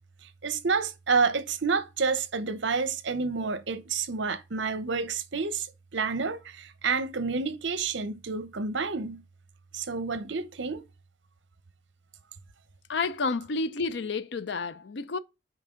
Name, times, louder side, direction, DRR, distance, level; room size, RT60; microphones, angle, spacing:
voice 1, 0.4-5.7 5.9-9.2 9.7-10.8, right 4 dB, 70° right, 0.8 m, -29 dB
voice 2, 12.9-15.2, left 4 dB, 65° left, 0.5 m, -30 dB
9.0 x 4.7 x 3.7 m
head